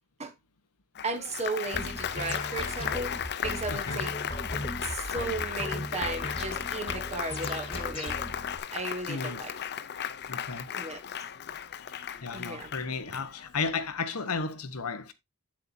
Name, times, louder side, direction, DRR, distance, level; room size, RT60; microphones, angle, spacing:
Applause, 1.0-13.7, left 9 dB, 50° left, 0.6 m, -36 dB
voice 1, 1.0-3.1 3.4-4.1 4.8-8.2 8.7-9.5 10.7-11.0 12.3-12.7, right 3 dB, 30° right, 1.4 m, -35 dB
sound 1, 1.7-8.6, left 1 dB, 25° left, 1.7 m, -38 dB
voice 2, 3.7-4.0 9.1-9.4 10.3-10.7 11.9-15.1, left 4 dB, 80° left, 1.1 m, -34 dB
9.0 x 7.5 x 2.7 m
head